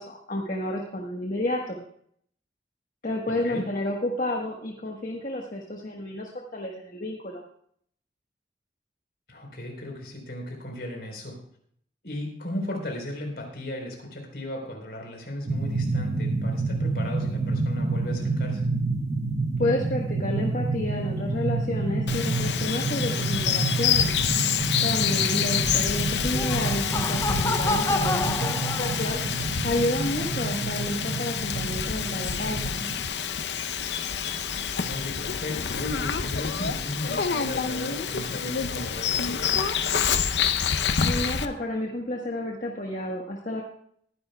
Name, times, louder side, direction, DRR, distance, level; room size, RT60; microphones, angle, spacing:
voice 1, 0.0-1.8 3.0-7.4 19.6-24.1 24.8-29.2 29.6-32.8 41.0-43.6, left 1 dB, 50° left, -1 dB, 1.4 m, -30 dB
voice 2, 3.3-3.6 9.3-11.4 12.0-18.7 34.8-39.7, left 1 dB, 65° left, 2 dB, 4.2 m, -36 dB
sound 1, 15.5-33.1, right 3 dB, 40° right, 0.8 m, -29 dB
Bird vocalization bird call bird song, 22.1-41.4, left 7 dB, 90° left, 0.7 m, -27 dB
Laughter, 26.2-29.4, left 2 dB, 15° left, 0.5 m, -29 dB
22.0 x 11.0 x 2.3 m, 0.64 s
head